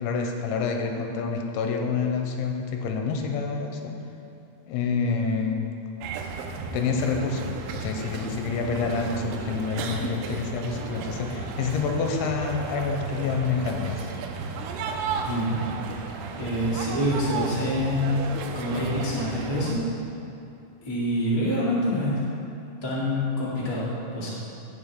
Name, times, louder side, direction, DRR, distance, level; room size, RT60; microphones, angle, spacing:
voice 1, 0.0-4.0 4.7-5.7 6.7-14.1, left 5 dB, 85° left, 3 dB, 3.1 m, -28 dB
sound 1, 6.0-19.8, right 4 dB, 85° right, 3.1 m, -34 dB
voice 2, 15.2-15.6 16.3-18.3 18.5-19.8 20.8-22.2 22.8-24.3, left 1 dB, 15° left, -9 dB, 0.8 m, -26 dB
16.5 x 6.0 x 3.7 m, 2.6 s
omnidirectional pair, 5.4 m